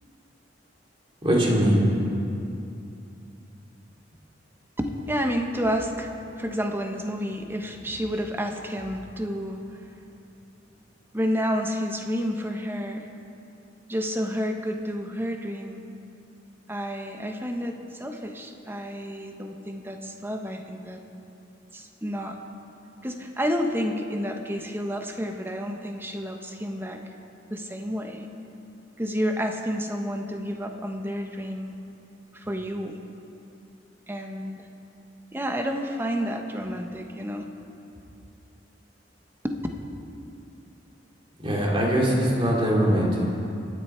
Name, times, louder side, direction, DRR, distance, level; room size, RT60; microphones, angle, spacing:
voice 1, 1.2-1.8 41.4-43.4, equal, 30° right, -2 dB, 2.7 m, -22 dB
voice 2, 4.8-9.8 11.1-13.1 13.9-15.8 16.7-21.0 21.7-22.4 23.0-27.0 27.5-28.3 29.0-31.7 32.3-33.0 34.1-34.6 35.3-37.5 39.4-39.6, equal, 10° right, 3 dB, 1.1 m, -30 dB
25.0 x 9.8 x 4.5 m, 2.7 s
head